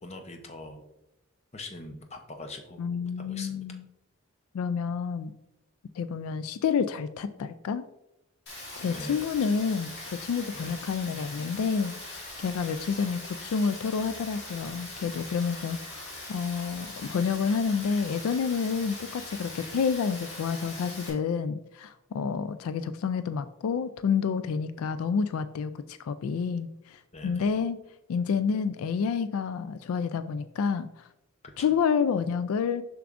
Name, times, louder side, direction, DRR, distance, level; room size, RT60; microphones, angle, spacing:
voice 1, 0.0-0.8 1.5-3.8 8.8-9.6 10.5-10.8 27.1-27.5 31.6-31.7, left 2 dB, 30° left, 5 dB, 0.7 m, -42 dB
voice 2, 2.8-3.8 4.5-5.3 6.0-7.8 8.8-27.8 28.1-31.0 31.6-32.8, left 6 dB, 75° left, 12 dB, 0.3 m, -29 dB
Rain, 8.5-21.1, left 2 dB, 50° left, 2.1 m, -41 dB
6.8 x 6.0 x 2.5 m, 0.90 s
head